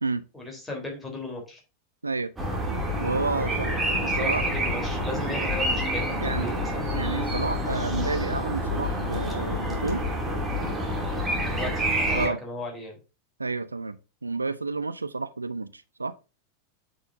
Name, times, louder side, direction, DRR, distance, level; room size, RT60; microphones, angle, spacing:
voice 1, 0.3-1.6 3.4-7.0 11.5-13.0, left 1 dB, 10° left, 3.8 m, -36 dB
sound 1, 2.4-12.3, equal, 10° right, 2.7 m, -28 dB
voice 2, 3.0-3.7 4.0-4.5 6.2-6.5 6.9-10.0 12.1-12.4 13.4-16.1, right 3 dB, 80° right, 0.4 m, -30 dB
8.5 x 5.7 x 2.7 m
figure-of-eight pair, 90°, 0 cm